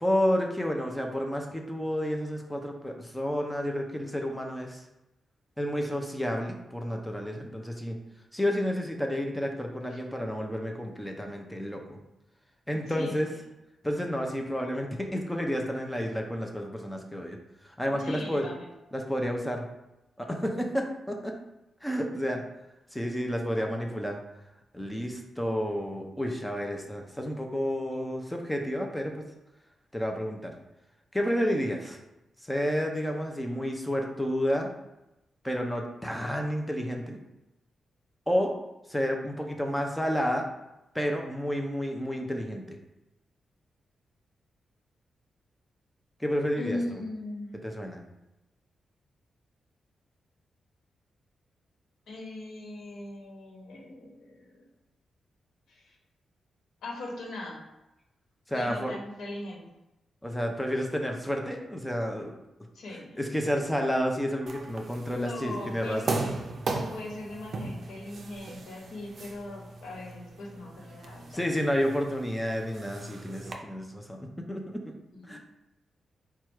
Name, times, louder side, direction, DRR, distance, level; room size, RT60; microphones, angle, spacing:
voice 1, 0.0-4.8 5.6-8.0 8.3-12.0 12.7-13.3 13.8-17.4 17.8-18.5 18.9-19.6 20.2-21.3 21.8-22.4 22.9-24.2 24.7-29.2 29.9-30.5 31.1-32.0 32.5-34.7 35.4-37.2 38.3-38.5 38.9-40.5 40.9-42.8 46.2-47.0 47.6-48.0 58.5-58.9 60.2-62.3 63.2-66.2 71.3-74.9 75.3-75.4, equal, 5° left, 2 dB, 0.6 m, -30 dB
voice 2, 12.7-13.4 18.0-18.7 46.6-47.6 52.1-54.6 55.7-56.0 56.8-57.6 58.5-59.6 62.7-63.2 65.1-66.4 66.7-71.5 75.1-75.4, left 2 dB, 80° left, -2 dB, 1.2 m, -39 dB
sound 1, 64.5-73.5, right 3 dB, 50° right, 0.5 m, -38 dB
4.5 x 2.3 x 4.4 m, 0.93 s
wide cardioid pair, 145°, 0 cm